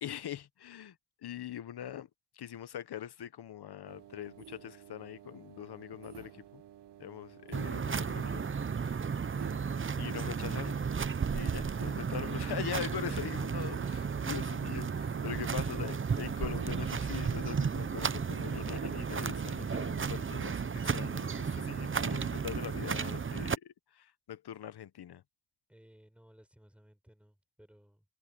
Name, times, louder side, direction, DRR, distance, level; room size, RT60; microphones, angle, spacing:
voice 1, 0.0-2.1 2.3-6.6 7.0-8.5 8.8-9.1 10.0-10.8 11.3-25.2, left 10 dB, 70° left, 1.1 m, -42 dB
sound 1, 3.9-22.0, right 9 dB, 85° right, 1.5 m, -53 dB
sound 2, 7.5-23.6, right 6 dB, 30° right, 0.8 m, -34 dB
voice 2, 25.7-28.0, equal, 5° right, 4.8 m, -59 dB
cardioid pair, 85°, 41 cm